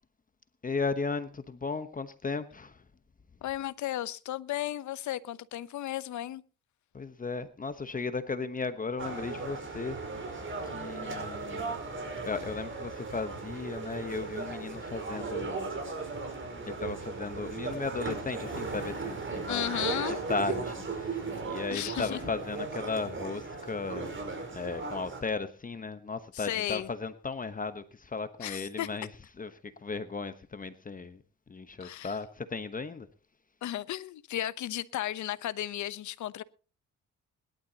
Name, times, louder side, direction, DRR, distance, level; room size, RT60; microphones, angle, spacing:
voice 1, 0.6-2.8 6.9-10.0 10.6-11.7 12.2-15.7 16.7-29.1 29.4-29.5 29.8-31.2 31.5-33.1, left 4 dB, 25° left, 1.1 m, -36 dB
voice 2, 3.4-6.4 19.5-20.2 21.7-22.2 26.3-26.9 28.4-28.9 31.8-32.2 33.6-36.4, left 13 dB, 70° left, 0.9 m, -34 dB
sound 1, 9.0-25.2, right 4 dB, 40° right, 5.0 m, -37 dB
22.0 x 12.0 x 2.9 m
cardioid pair, 90°, 30 cm